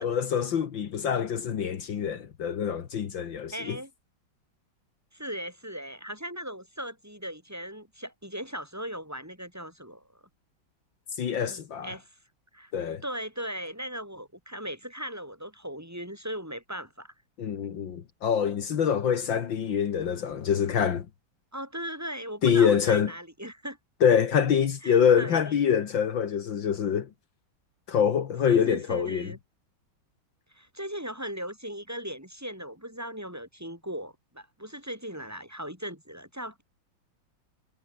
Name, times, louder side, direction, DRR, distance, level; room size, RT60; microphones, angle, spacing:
voice 1, 0.0-3.8 11.2-11.9 12.7-13.0 17.4-21.1 22.4-23.1 24.0-27.1 27.9-29.3, left 7 dB, 70° left, 2.2 m, -25 dB
voice 2, 3.5-3.9 5.1-10.2 11.4-12.2 12.5-12.7 13.0-17.1 19.3-19.4 21.5-23.8 24.8-25.6 28.5-29.4 30.5-36.6, equal, 5° right, 7.6 m, -38 dB
omnidirectional pair, 2.2 m